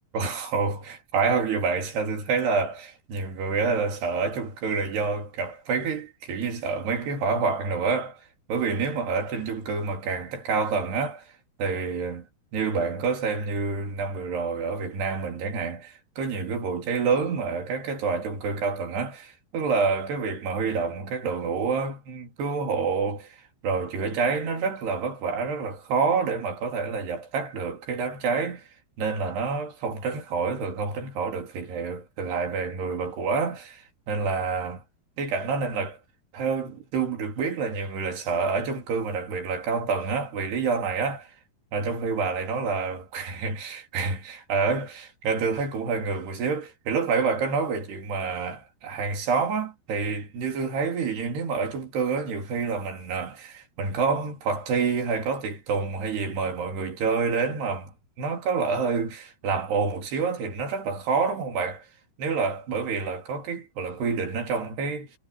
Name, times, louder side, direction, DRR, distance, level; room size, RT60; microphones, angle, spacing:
voice 1, 0.1-11.3 11.6-12.2 12.5-28.7 29.0-34.8 35.2-36.0 36.3-41.3 41.7-57.9 58.2-61.9 62.2-65.1, right 5 dB, 80° right, 5.8 m, -28 dB
omnidirectional pair, 4.7 m